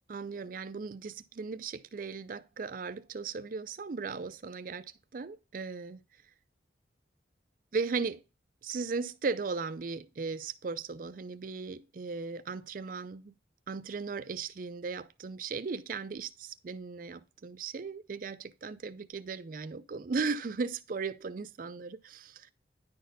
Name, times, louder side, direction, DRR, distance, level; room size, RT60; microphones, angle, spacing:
voice 1, 0.1-6.0 7.7-8.2 8.6-13.4 13.7-22.5, right 4 dB, 45° right, 0.4 m, -37 dB
10.5 x 4.2 x 4.0 m
head